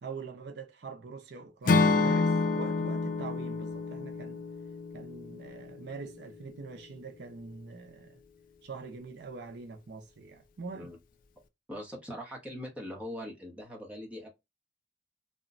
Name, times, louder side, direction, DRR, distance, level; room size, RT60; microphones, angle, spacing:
voice 1, 0.0-4.4 4.9-8.2 8.6-10.9, right 4 dB, 60° right, 0.5 m, -44 dB
Acoustic guitar / Strum, 1.7-5.8, left 3 dB, 45° left, 0.4 m, -28 dB
voice 2, 11.7-14.3, left 1 dB, 5° right, 0.9 m, -41 dB
2.9 x 2.1 x 2.4 m
head